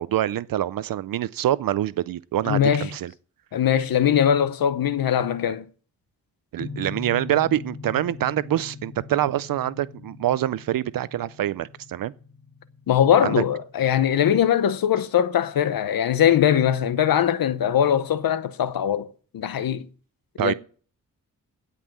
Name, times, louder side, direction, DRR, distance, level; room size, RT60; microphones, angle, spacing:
voice 1, 0.0-3.1 6.5-12.1 13.2-13.4 20.4-20.5, right 12 dB, 75° right, 0.5 m, -25 dB
voice 2, 2.5-2.9 3.5-5.7 12.9-19.1 19.3-19.9 20.4-20.5, left 9 dB, 85° left, 0.9 m, -21 dB
sound 1, 6.6-15.3, left 5 dB, 30° left, 1.2 m, -41 dB
16.5 x 5.6 x 7.5 m
wide cardioid pair, 175°, 34 cm